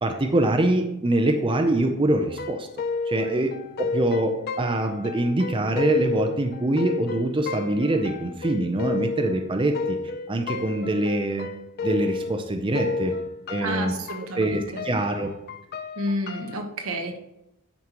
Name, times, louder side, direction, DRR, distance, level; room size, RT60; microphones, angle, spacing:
voice 1, 0.0-2.7 3.1-10.0 10.3-11.5 11.8-13.1 13.5-13.9 14.4-15.3, right 1 dB, 25° right, 4 dB, 0.6 m, -24 dB
sound 1, 2.3-12.5 12.7-16.6, left 4 dB, 45° left, 0.5 m, -32 dB
voice 2, 13.6-14.9 16.0-17.2, right 1 dB, 75° right, 5 dB, 1.1 m, -30 dB
9.5 x 5.4 x 3.0 m, 0.86 s
head